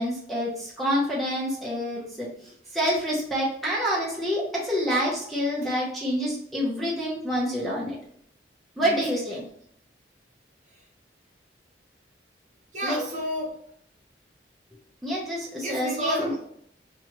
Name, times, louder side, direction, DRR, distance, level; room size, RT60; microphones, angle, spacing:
voice 1, 0.0-2.3 2.7-7.9 8.8-9.4 12.8-13.0 15.0-16.3, equal, ahead, -5 dB, 0.7 m, -27 dB
voice 2, 8.8-9.2 12.7-13.6 15.6-16.4, equal, 40° right, -3 dB, 0.8 m, -31 dB
3.0 x 2.3 x 2.8 m, 0.67 s
head